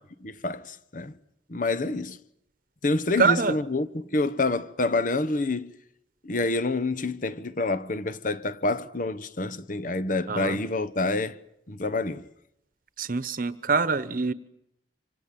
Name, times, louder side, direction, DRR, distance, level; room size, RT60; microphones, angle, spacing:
voice 1, 0.2-1.2 1.5-2.2 2.8-5.7 6.2-11.4 11.7-12.3, left 2 dB, 45° left, 1.1 m, -27 dB
voice 2, 3.2-3.6 10.3-10.6 13.0-14.3, right 4 dB, 50° right, 1.1 m, -24 dB
26.5 x 26.5 x 7.6 m
head